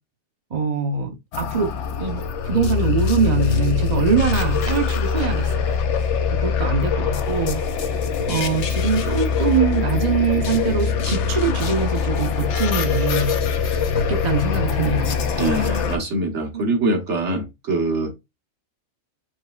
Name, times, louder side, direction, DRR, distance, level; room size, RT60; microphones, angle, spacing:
voice 1, 0.5-1.7 2.0-5.7 6.4-7.6 8.3-13.4 13.9-15.2 16.5-16.6, right 6 dB, 35° right, 0.9 m, -23 dB
sound 1, 1.3-16.0, left 6 dB, 65° left, 0.9 m, -23 dB
voice 2, 15.4-18.1, right 2 dB, 60° right, 1.4 m, -23 dB
5.0 x 3.4 x 2.4 m
omnidirectional pair, 1.4 m